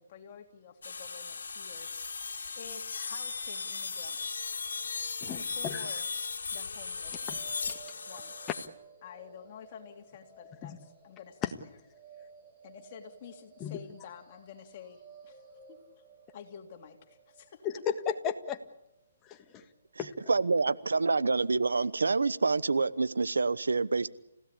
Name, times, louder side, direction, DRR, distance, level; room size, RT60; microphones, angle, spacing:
voice 1, 0.0-1.9 2.5-4.5 5.2-6.1 6.5-7.3 8.1-8.5 9.0-11.5 12.6-15.4 15.7-15.8 16.3-17.7, left 8 dB, 40° left, 3 dB, 3.1 m, -50 dB
sound 1, 0.8-8.7, left 5 dB, 75° left, 2.3 m, -37 dB
voice 2, 5.2-5.8 7.3-7.4 7.7-7.8 10.6-10.8 11.4-11.5 13.6-13.8 17.6-18.6 19.2-19.6 20.0-20.3, left 8 dB, 20° left, 6 dB, 1.7 m, -35 dB
sound 2, 6.5-20.5, right 4 dB, 15° right, 4.7 m, -56 dB
voice 3, 20.3-24.1, right 4 dB, 85° right, 17 dB, 0.9 m, -27 dB
29.5 x 16.5 x 8.4 m, 0.84 s
hypercardioid pair, 145°, 0 cm